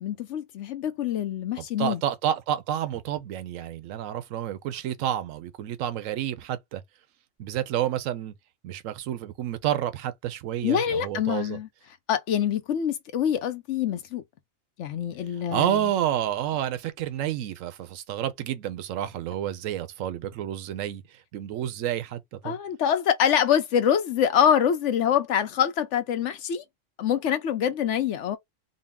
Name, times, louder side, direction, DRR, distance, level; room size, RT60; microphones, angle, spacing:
voice 1, 0.0-2.0 10.6-11.7 12.1-14.2 14.8-15.9 22.4-26.6 27.0-28.4, left 9 dB, 70° left, 0.9 m, -25 dB
voice 2, 1.6-6.8 7.4-8.3 8.6-11.6 15.5-21.0 21.3-22.6, right 11 dB, 80° right, 1.0 m, -29 dB
3.8 x 2.1 x 3.5 m
omnidirectional pair, 1.4 m